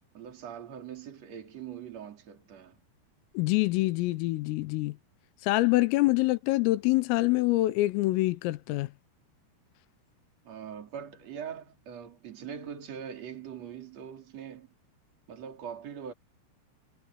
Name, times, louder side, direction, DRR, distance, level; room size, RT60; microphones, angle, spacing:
voice 1, 0.1-2.8 10.5-14.7 15.3-16.1, right 8 dB, 35° right, 3.7 m, -42 dB
voice 2, 3.4-5.0 5.4-8.9, left 19 dB, 90° left, 3.7 m, -25 dB
omnidirectional pair, 5.8 m